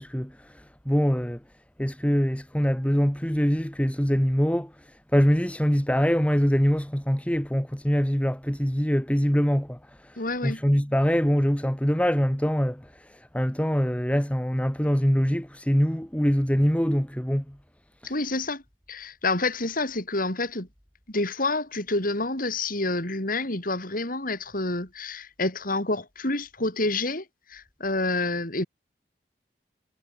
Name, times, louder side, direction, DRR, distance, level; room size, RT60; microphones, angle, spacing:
voice 1, 0.0-1.4 1.8-4.7 5.1-17.6 18.0-18.1, equal, 10° left, 2.0 m, -24 dB
voice 2, 10.2-10.6 18.0-18.6 18.9-20.7 21.1-28.7, left 2 dB, 55° left, 6.7 m, -28 dB
head